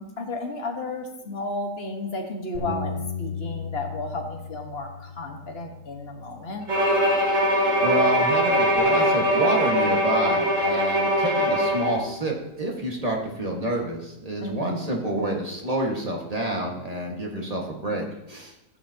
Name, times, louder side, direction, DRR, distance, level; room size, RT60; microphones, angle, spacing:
voice 1, 0.0-6.7 14.4-14.9, left 2 dB, 40° left, 2 dB, 1.5 m, -33 dB
Bass guitar, 2.5-7.0 7.6-8.8, left 4 dB, 85° left, 3.2 m, -37 dB
Bowed string instrument, 6.7-12.0, equal, 45° right, 3.3 m, -21 dB
voice 2, 7.8-18.5, right 1 dB, 25° right, -1 dB, 1.6 m, -28 dB
14.5 x 9.3 x 2.8 m, 0.87 s
omnidirectional pair, 1.8 m